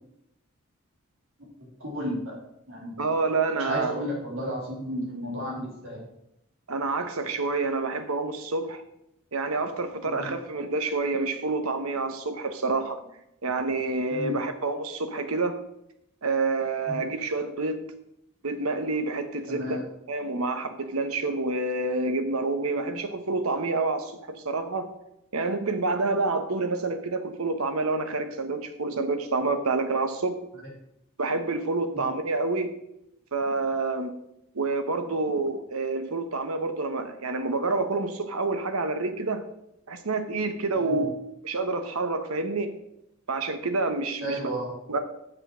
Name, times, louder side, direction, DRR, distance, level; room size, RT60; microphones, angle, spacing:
voice 1, 1.8-2.4 2.6-3.0 3.6-6.0 10.0-10.3 14.1-14.4 16.8-16.9 19.5-19.8 22.7-22.9 31.9-32.0 40.7-41.1 44.2-44.7, equal, 65° right, -2 dB, 3.3 m, -33 dB
voice 2, 3.0-3.9 6.7-8.8 9.3-13.0 13.4-15.6 16.2-17.8 18.4-19.8 20.1-24.9 25.3-30.4 31.2-32.7 33.3-34.1 34.5-39.4 39.9-41.2 41.4-42.7 43.3-44.4 44.9-45.0, right 3 dB, 90° right, 8 dB, 1.1 m, -28 dB
7.5 x 6.4 x 6.1 m, 0.81 s
head